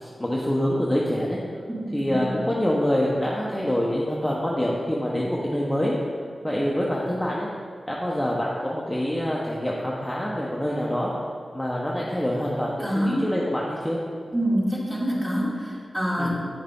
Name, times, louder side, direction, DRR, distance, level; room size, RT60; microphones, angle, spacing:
voice 1, 0.0-1.4 1.9-5.9 6.4-7.5 7.9-11.1 11.5-14.0 16.2-16.3, equal, 5° left, -5 dB, 1.0 m, -26 dB
voice 2, 1.7-2.4 12.8-13.2 14.3-16.3, equal, 15° right, -6 dB, 2.3 m, -26 dB
9.4 x 6.4 x 3.7 m, 2.1 s
wide cardioid pair, 75°, 0 cm